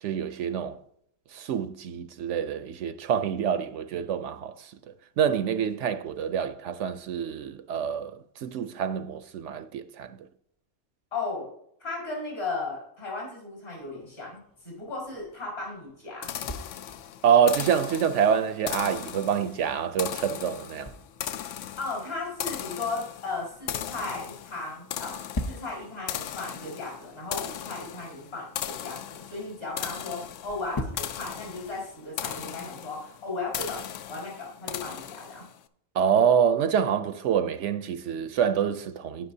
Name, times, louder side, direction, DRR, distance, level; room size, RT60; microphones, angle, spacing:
voice 1, 0.0-0.8 1.3-4.8 5.2-10.2 17.2-20.9 35.9-39.3, right 8 dB, 70° right, 0.9 m, -26 dB
voice 2, 11.1-11.5 11.8-16.4 21.8-35.5, left 3 dB, 50° left, 5.0 m, -36 dB
sound 1, 13.8-32.7, left 1 dB, 25° left, 0.5 m, -45 dB
sound 2, 16.2-35.6, left 10 dB, 75° left, 0.9 m, -38 dB
17.5 x 6.0 x 2.7 m
omnidirectional pair, 1.3 m